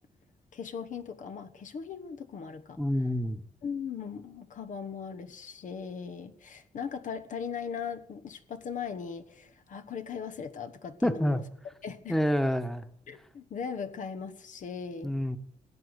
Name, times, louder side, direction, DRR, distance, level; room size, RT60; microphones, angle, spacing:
voice 1, 0.5-2.8 3.6-11.4 11.8-12.1 13.1-15.1, left 6 dB, 65° left, 10 dB, 1.2 m, -39 dB
voice 2, 2.8-3.4 11.0-11.4 12.1-12.8 15.0-15.4, equal, 5° left, 9 dB, 1.3 m, -27 dB
16.5 x 8.1 x 8.1 m, 0.65 s
cardioid pair, 95°, 14 cm